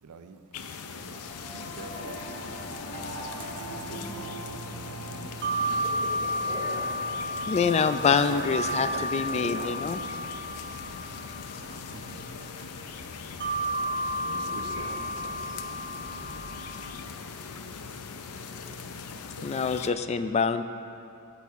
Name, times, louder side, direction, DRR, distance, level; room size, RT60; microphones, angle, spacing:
voice 1, 0.0-0.4 0.8-2.3 2.7-5.0 6.5-6.6 8.1-10.9 11.6-12.8 14.2-15.9, right 5 dB, 90° right, 9 dB, 0.5 m, -46 dB
sound 1, 0.5-19.9, left 5 dB, 85° left, 0.5 m, -40 dB
sound 2, 1.1-16.9, equal, 55° right, 1.2 m, -34 dB
Singing / Musical instrument, 1.4-11.0, right 1 dB, 55° left, 0.9 m, -44 dB
voice 2, 5.1-6.9 14.4-15.8, left 1 dB, 20° right, -7 dB, 2.1 m, -44 dB
voice 3, 7.5-10.0 19.4-20.6, left 5 dB, 30° left, 10 dB, 0.3 m, -25 dB
14.0 x 6.1 x 3.6 m, 2.7 s
head